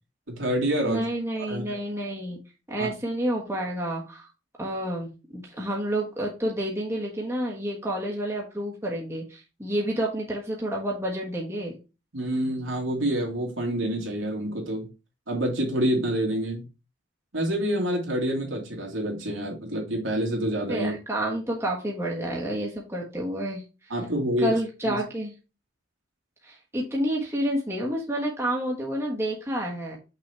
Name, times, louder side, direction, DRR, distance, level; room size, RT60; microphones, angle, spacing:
voice 1, 0.3-1.0 1.5-1.7 2.8-2.9 12.1-14.9 15.3-16.6 17.3-20.9 23.9-24.6 24.8-25.0, right 1 dB, 85° right, -1 dB, 2.3 m, -27 dB
voice 2, 0.8-2.4 2.7-4.3 4.6-11.7 20.7-23.9 24.4-25.3 26.4-30.0, right 1 dB, 15° right, -2 dB, 1.3 m, -29 dB
6.0 x 4.1 x 4.4 m, 0.29 s
head